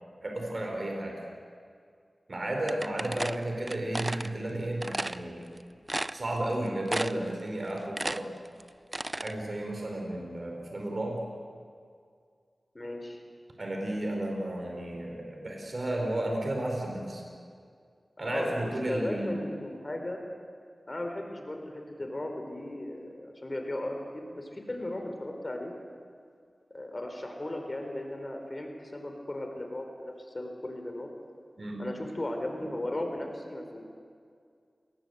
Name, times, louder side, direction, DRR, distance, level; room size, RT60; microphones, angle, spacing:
voice 1, 0.2-1.2 2.3-5.4 6.1-8.3 9.2-11.2 13.6-17.2 18.2-19.4 31.6-31.8, right 1 dB, 50° right, 1 dB, 4.5 m, -33 dB
sound 1, 2.7-4.3 4.8-5.2 5.6-5.7 5.9-6.5 6.9-7.3 7.6-9.3, right 1 dB, 25° right, 0.7 m, -33 dB
voice 2, 12.7-13.2 18.2-20.2 20.9-25.7 26.7-31.1 31.8-33.8, left 1 dB, 35° left, 3 dB, 4.0 m, -36 dB
29.0 x 19.5 x 8.0 m, 2.2 s
wide cardioid pair, 60°, 0 cm